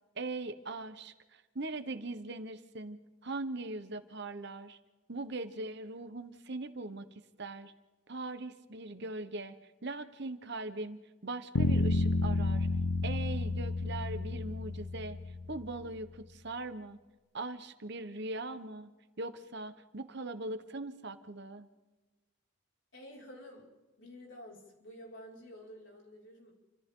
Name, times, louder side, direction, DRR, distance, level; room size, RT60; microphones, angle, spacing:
voice 1, 0.2-1.1 1.5-4.8 5.1-7.1 7.4-7.7 8.1-9.5 9.8-12.7 13.0-15.2 15.5-17.0 17.3-18.9 19.2-21.7, right 2 dB, 55° right, 10 dB, 1.2 m, -40 dB
sound 1, 11.6-15.7, left 3 dB, 80° left, 1.0 m, -31 dB
voice 2, 22.9-23.7 24.0-26.5, equal, 60° left, -2 dB, 5.6 m, -50 dB
29.5 x 25.5 x 3.9 m, 1.2 s
head